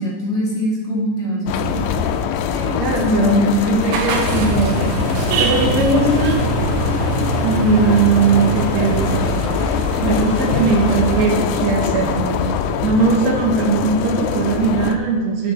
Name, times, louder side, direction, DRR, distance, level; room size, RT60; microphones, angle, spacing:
voice 1, 0.0-1.8 2.5-3.8, left 1 dB, 30° left, -6 dB, 1.7 m, -22 dB
sound 1, 1.5-15.0, left 7 dB, 85° left, 2.0 m, -23 dB
voice 2, 2.8-4.8 5.4-6.5 7.4-9.3 10.0-12.4 12.8-15.5, right 4 dB, 70° right, 0 dB, 2.3 m, -19 dB
sound 2, 3.9-11.3, right 4 dB, 90° right, 2.3 m, -23 dB
8.5 x 3.3 x 6.2 m, 1.5 s
omnidirectional pair, 3.4 m